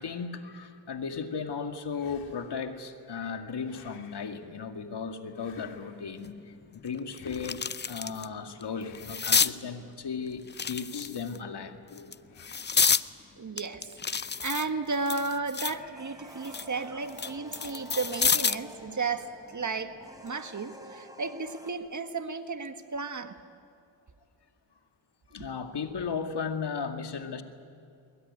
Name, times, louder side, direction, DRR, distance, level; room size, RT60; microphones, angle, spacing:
voice 1, 0.0-6.4 6.7-12.1 25.3-27.4, left 5 dB, 55° left, 6 dB, 2.2 m, -36 dB
sound 1, 1.9-2.7 3.6-4.4 5.3-6.1 7.1-7.9 8.7-9.5 10.4-11.3 12.3-12.9 14.0-14.7, left 7 dB, 75° left, 2.4 m, -56 dB
sound 2, 6.2-6.3 6.8-8.3 8.6-9.5 10.5-11.4 12.0-13.1 13.6-15.8 16.2-18.7 20.1-20.3, left 5 dB, 20° left, 0.6 m, -29 dB
voice 2, 13.4-13.9 14.4-19.9 20.2-23.3 25.4-25.5, right 4 dB, 35° right, 8 dB, 1.7 m, -33 dB
sound 3, 15.9-21.7, equal, 5° right, 3.6 m, -49 dB
22.0 x 21.5 x 9.8 m, 2.4 s
cardioid pair, 60°, 48 cm